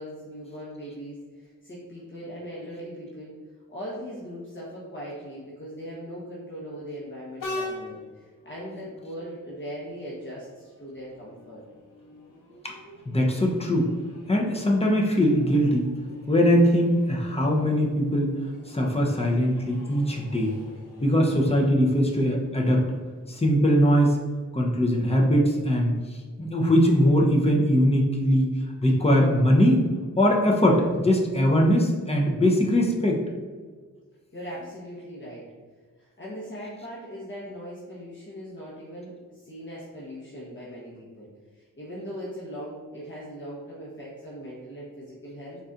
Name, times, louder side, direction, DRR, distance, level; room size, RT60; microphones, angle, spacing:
voice 1, 0.0-3.4 3.7-11.6 34.3-35.4 36.0-45.6, equal, 35° left, -8 dB, 1.1 m, -39 dB
Train, 7.4-24.7, left 2 dB, 90° left, 1.0 m, -45 dB
voice 2, 13.1-13.9 14.3-15.9 16.3-18.3 18.7-20.6 21.0-22.8 23.3-24.2 24.5-25.9 26.4-28.5 28.8-29.9 30.2-33.2, equal, 20° left, -1 dB, 0.7 m, -21 dB
4.0 x 4.0 x 2.5 m, 1.5 s
wide cardioid pair, 75°, 31 cm